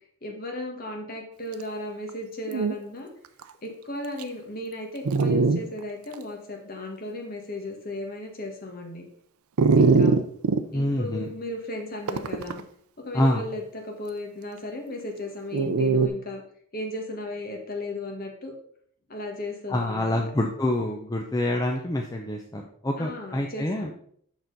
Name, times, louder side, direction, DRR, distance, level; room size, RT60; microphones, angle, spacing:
voice 1, 0.2-3.1 3.6-9.1 9.7-10.1 10.7-12.6 13.0-16.4 16.7-18.5 19.1-20.2 23.0-23.9, left 2 dB, 40° left, 1 dB, 1.6 m, -35 dB
Dog, 2.1-2.2 2.5-2.7 3.4-3.5 4.2-4.3 5.0-5.6 6.1-6.2 9.6-10.6 12.1-12.6 15.5-16.1, right 4 dB, 85° right, 0.5 m, -21 dB
voice 2, 10.7-11.3 13.1-13.4 19.7-23.9, left 1 dB, 15° left, 1 dB, 0.5 m, -26 dB
6.7 x 6.0 x 4.0 m, 0.62 s
head